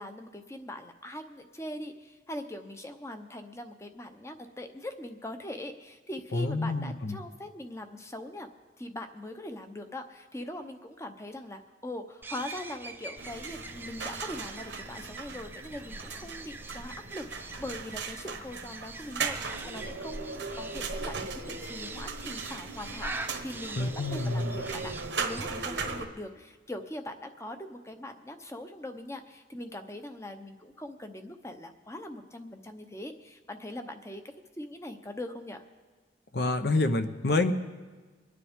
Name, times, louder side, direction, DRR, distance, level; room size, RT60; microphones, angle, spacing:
voice 1, 0.0-8.5 8.8-34.2 34.6-35.6, left 1 dB, 15° left, 7 dB, 0.8 m, -41 dB
voice 2, 6.3-7.2 23.8-24.6 36.3-37.5, left 2 dB, 60° left, 8 dB, 0.8 m, -28 dB
sound 1, 12.2-25.5, right 3 dB, 10° right, 0.5 m, -44 dB
sound 2, 13.2-26.1, right 4 dB, 90° right, 1.2 m, -38 dB
24.5 x 9.8 x 3.6 m, 1.4 s
head